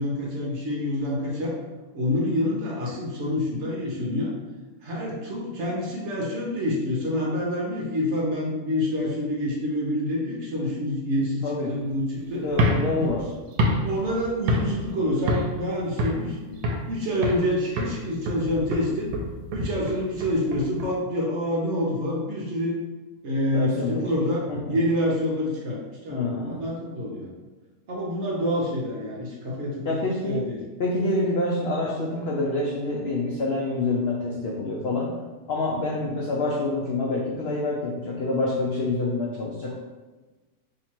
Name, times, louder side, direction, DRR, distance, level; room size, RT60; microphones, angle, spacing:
voice 1, 0.0-1.6 1.9-4.3 4.8-12.4 13.0-13.1 13.8-16.6 16.9-19.1 19.5-22.8 23.2-27.3 27.9-30.6, left 1 dB, 60° right, -3 dB, 0.8 m, -27 dB
voice 2, 12.4-13.3 23.5-24.1 24.5-24.8 26.1-26.6 29.9-30.5 30.8-35.1 35.5-39.7, left 2 dB, 85° left, -2 dB, 0.5 m, -27 dB
sound 1, 12.5-14.9 15.3-15.6 16.0-16.9 17.2-17.5 17.8-20.9, equal, 80° right, 1.1 m, -27 dB
2.9 x 2.9 x 4.3 m, 1.3 s
omnidirectional pair, 1.7 m